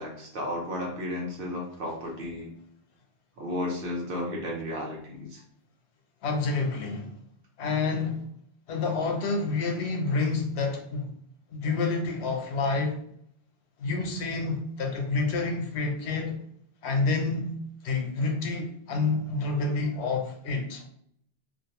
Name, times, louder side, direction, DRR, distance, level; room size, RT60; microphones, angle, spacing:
voice 1, 0.0-2.5 3.4-5.4, left 1 dB, 60° right, 0.9 m, -33 dB
voice 2, 6.2-7.2 7.6-8.3 8.7-11.1 11.5-13.0 13.8-16.4 16.8-17.6 17.8-20.9, left 3 dB, 80° left, 0.9 m, -28 dB
2.5 x 2.0 x 2.9 m
omnidirectional pair, 1.1 m